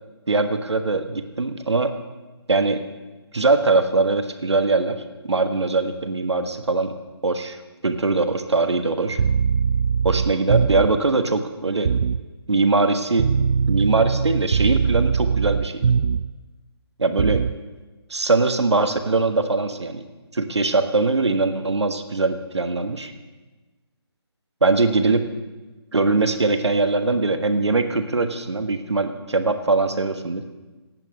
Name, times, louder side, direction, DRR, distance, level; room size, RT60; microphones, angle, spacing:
voice 1, 0.3-2.0 2.5-2.8 3.3-6.9 7.2-7.6 7.8-9.2 10.0-11.9 12.5-13.3 13.7-15.8 17.0-17.4 18.1-20.0 20.3-23.1 24.6-25.2 25.9-30.4, right 3 dB, 85° right, 8 dB, 1.5 m, -21 dB
sound 1, 9.1-11.0 11.9-12.3 13.2-16.4 17.2-17.6, right 6 dB, 65° right, 0.4 m, -21 dB
16.5 x 6.1 x 8.8 m, 1.2 s
figure-of-eight pair, 155°, 14 cm